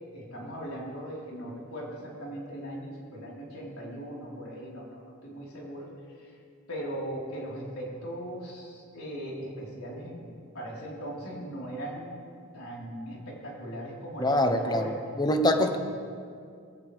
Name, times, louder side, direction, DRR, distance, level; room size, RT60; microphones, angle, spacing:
voice 1, 0.1-5.9 6.2-6.3 6.7-10.2 10.5-12.1 12.5-15.0 15.5-15.7, right 1 dB, 85° left, -5 dB, 4.4 m, -39 dB
voice 2, 14.2-14.9 15.2-15.8, left 1 dB, 20° left, 7 dB, 0.9 m, -24 dB
21.0 x 16.5 x 3.5 m, 2.3 s
head